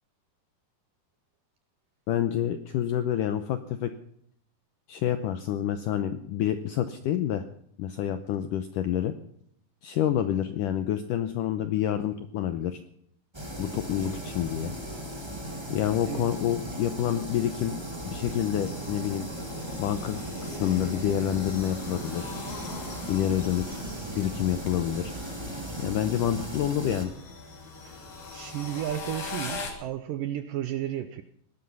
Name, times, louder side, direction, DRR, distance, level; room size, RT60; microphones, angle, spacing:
voice 1, 2.1-3.9 4.9-7.4 7.8-9.1 9.8-12.8 13.6-14.7 15.7-17.8 18.0-19.3 19.8-22.3 23.1-23.8 24.2-25.1 25.8-27.1, left 11 dB, 80° left, 1.9 m, -28 dB
sound 1, 13.3-27.0, right 1 dB, 20° right, 0.7 m, -37 dB
sound 2, 17.9-29.7, left 3 dB, 50° left, 3.9 m, -42 dB
voice 2, 28.3-31.2, right 12 dB, 80° right, 2.0 m, -33 dB
19.0 x 12.0 x 5.5 m
omnidirectional pair, 4.8 m